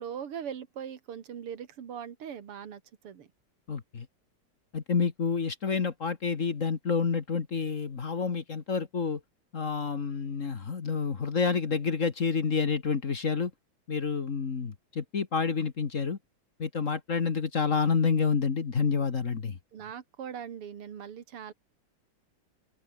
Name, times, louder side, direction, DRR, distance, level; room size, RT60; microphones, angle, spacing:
voice 1, 0.0-3.3 19.7-21.5, right 8 dB, 85° right, 2.8 m, -40 dB
voice 2, 3.7-4.1 4.7-9.2 9.5-13.5 13.9-16.2 16.6-19.6, left 5 dB, 40° left, 1.7 m, -29 dB
open air
omnidirectional pair, 2.4 m